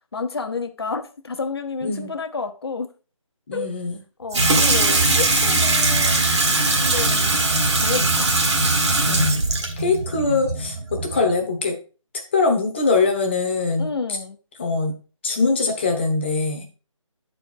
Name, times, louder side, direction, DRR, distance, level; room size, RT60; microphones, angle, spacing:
voice 1, 0.1-2.9 3.5-3.7 4.2-6.2 6.8-7.4 7.7-8.3 13.8-14.4, left 4 dB, 50° left, 0.9 m, -30 dB
voice 2, 3.5-4.0 9.1-9.3 9.8-11.7 12.3-13.9 14.6-14.9 15.2-16.6, left 3 dB, 20° left, 1.0 m, -22 dB
Water tap faucet / Sink (filling or washing), 4.3-11.4, right 2 dB, 55° right, 1.5 m, -20 dB
9.0 x 4.5 x 4.4 m
figure-of-eight pair, 170°, 17 cm